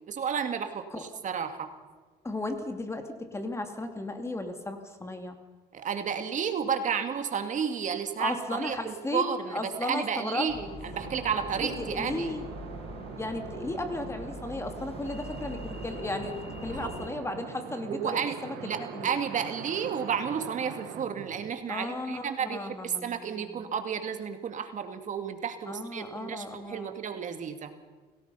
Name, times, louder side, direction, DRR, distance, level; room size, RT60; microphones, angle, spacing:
voice 1, 0.1-1.7 5.7-12.4 16.7-16.9 17.9-27.7, right 7 dB, 50° right, 7 dB, 2.1 m, -32 dB
voice 2, 2.2-5.4 8.2-10.5 11.8-12.5 13.2-16.4 16.6-19.1 21.7-23.7 25.7-27.0, left 2 dB, 15° left, 6 dB, 2.6 m, -35 dB
sound 1, 10.5-17.1, left 4 dB, 35° left, 1.6 m, -43 dB
sound 2, 10.9-21.5, right 10 dB, 85° right, 1.7 m, -43 dB
29.0 x 18.5 x 5.7 m, 1.3 s
cardioid pair, 110°, 17 cm